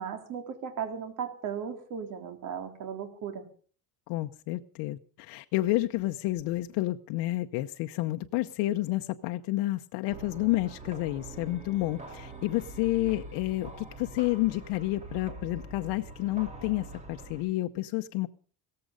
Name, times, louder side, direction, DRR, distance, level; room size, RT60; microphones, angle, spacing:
voice 1, 0.0-3.4, right 7 dB, 50° right, 3.3 m, -36 dB
voice 2, 4.1-18.3, left 17 dB, 85° left, 0.9 m, -30 dB
sound 1, 10.1-17.4, right 2 dB, 15° right, 2.8 m, -44 dB
17.5 x 14.5 x 5.2 m
cardioid pair, 175°, 41 cm